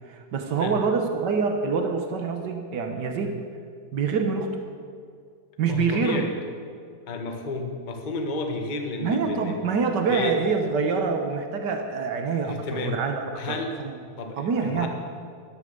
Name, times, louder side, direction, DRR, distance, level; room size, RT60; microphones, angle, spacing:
voice 1, 0.1-3.4 3.9-4.5 5.6-6.3 9.0-14.0 14.4-14.9, right 5 dB, 80° right, 4 dB, 0.9 m, -26 dB
voice 2, 5.7-6.3 7.1-9.5 10.1-10.4 12.4-12.9 13.4-13.7 14.2-14.9, left 3 dB, 70° left, 3 dB, 0.4 m, -31 dB
13.0 x 12.5 x 8.0 m, 2.2 s
omnidirectional pair, 3.6 m